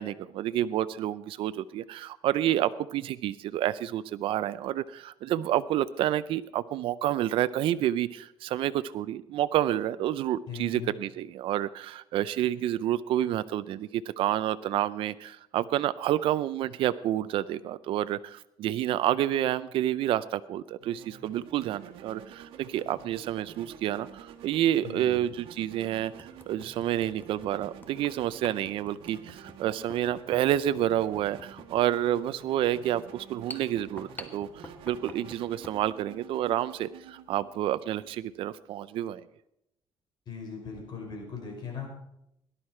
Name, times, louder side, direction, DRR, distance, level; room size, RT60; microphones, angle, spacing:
voice 1, 0.0-39.2, right 12 dB, 70° right, 14 dB, 0.5 m, -29 dB
voice 2, 10.5-10.9 24.8-25.2 40.3-41.9, left 5 dB, 50° left, 1 dB, 5.5 m, -39 dB
sound 1, 20.8-38.5, right 8 dB, 90° right, 1.5 m, -49 dB
sound 2, 23.0-23.2 24.7-24.8 25.3-25.4 26.0-35.8, left 2 dB, 20° left, 1.3 m, -49 dB
18.0 x 11.5 x 4.4 m, 0.79 s
cardioid pair, 125°, 9 cm